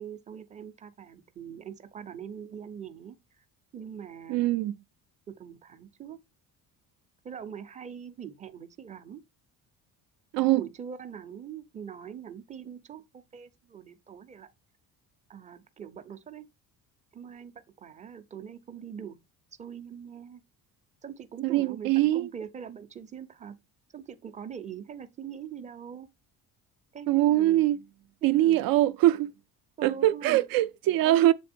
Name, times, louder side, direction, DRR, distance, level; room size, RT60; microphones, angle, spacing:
voice 1, 0.0-3.2 3.7-4.5 5.3-6.2 7.2-9.2 10.5-14.5 15.3-16.5 17.1-19.2 19.6-20.4 21.0-23.6 23.9-26.1 26.9-27.6 28.2-28.6 29.8-30.4 31.0-31.3, right 8 dB, 20° right, 0.5 m, -42 dB
voice 2, 4.3-4.7 10.3-10.6 21.4-22.3 27.1-27.8 28.2-29.3 29.8-31.3, right 15 dB, 70° right, 0.5 m, -23 dB
7.6 x 3.6 x 4.3 m
cardioid pair, 170°, 36 cm